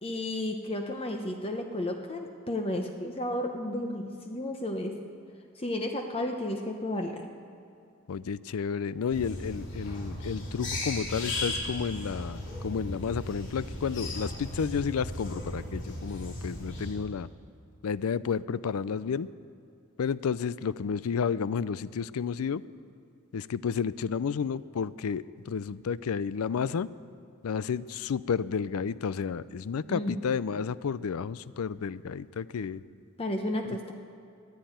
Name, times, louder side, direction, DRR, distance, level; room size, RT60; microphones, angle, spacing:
voice 1, 0.0-5.0 5.6-7.3 29.9-30.2 33.2-33.9, left 1 dB, 25° left, 3 dB, 0.8 m, -32 dB
voice 2, 8.1-17.3 17.8-19.3 20.0-22.6 23.3-26.9 27.4-32.8, left 6 dB, 75° left, 18 dB, 0.4 m, -31 dB
sound 1, 9.1-16.9, left 1 dB, 60° left, 4.3 m, -36 dB
14.5 x 11.0 x 9.2 m, 2.4 s
head